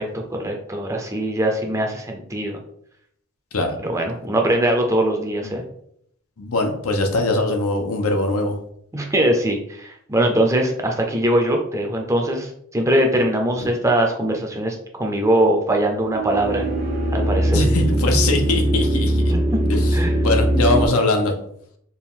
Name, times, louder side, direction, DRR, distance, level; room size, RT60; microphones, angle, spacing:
voice 1, 0.0-2.6 3.8-5.6 8.9-16.6 17.1-17.6 19.3-19.4 19.9-20.2, right 1 dB, 15° right, 2 dB, 0.5 m, -21 dB
voice 2, 6.4-8.5 13.6-13.7 17.5-19.3 19.7-21.3, left 2 dB, 85° left, 4 dB, 0.7 m, -22 dB
sound 1, 15.8-20.9, right 1 dB, 45° right, 0.8 m, -20 dB
4.4 x 2.4 x 3.6 m, 0.70 s
head